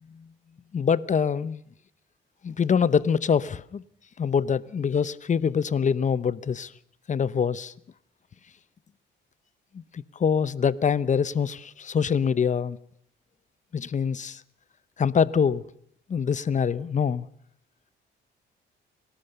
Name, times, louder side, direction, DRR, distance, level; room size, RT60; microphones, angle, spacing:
voice 1, 0.7-1.6 2.4-3.8 4.2-6.7 7.1-7.7 9.7-12.8 13.7-14.4 15.0-15.6 16.1-17.3, left 6 dB, 40° left, 0.8 m, -24 dB
30.0 x 13.0 x 6.8 m
cardioid pair, 90°, 20 cm